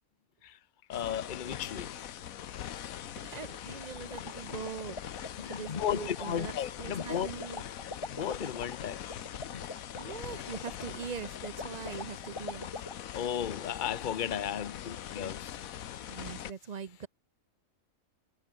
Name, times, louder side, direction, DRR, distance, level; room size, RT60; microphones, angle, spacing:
sound 1, 0.9-16.5, left 10 dB, 85° left, 1.3 m, -42 dB
voice 1, 0.9-1.9 5.4-7.3 7.6-9.1 9.5-9.7 13.1-15.9, left 9 dB, 40° left, 1.0 m, -35 dB
voice 2, 3.1-5.0 5.4-6.5 6.8-7.6 10.0-12.8 16.1-17.1, right 6 dB, 35° right, 0.8 m, -42 dB
sound 2, 3.8-12.9, left 3 dB, 20° left, 1.4 m, -43 dB
omnidirectional pair, 1.4 m